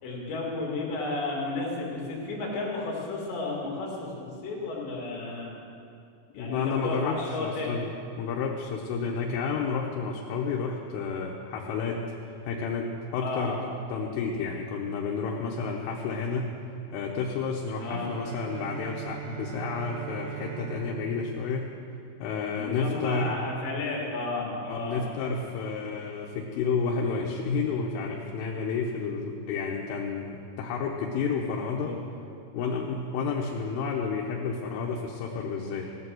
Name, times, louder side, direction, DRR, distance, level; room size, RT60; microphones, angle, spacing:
voice 1, 0.0-5.5 6.3-7.7 13.2-13.6 17.8-18.1 22.6-25.1 31.8-32.0, left 3 dB, 65° left, -3 dB, 4.6 m, -33 dB
voice 2, 6.4-7.9 8.2-12.0 12.4-13.6 13.9-16.5 16.9-21.7 22.2-23.4 24.7-31.9 32.5-35.9, left 5 dB, 85° left, -1 dB, 3.6 m, -31 dB
Bowed string instrument, 17.9-22.7, right 10 dB, 80° right, 3.5 m, -41 dB
17.0 x 8.7 x 7.7 m, 2.5 s
omnidirectional pair, 5.6 m